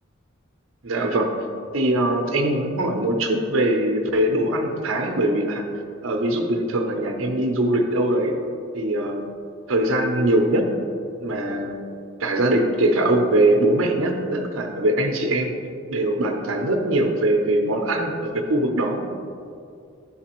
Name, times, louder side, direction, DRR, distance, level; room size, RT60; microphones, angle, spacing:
voice 1, 0.8-1.4 1.7-5.6 6.0-8.3 8.7-9.3 9.7-10.7 11.2-11.8 12.2-15.6 15.9-19.0, right 1 dB, 75° right, 2 dB, 0.7 m, -22 dB
11.0 x 4.0 x 3.0 m, 2.4 s
head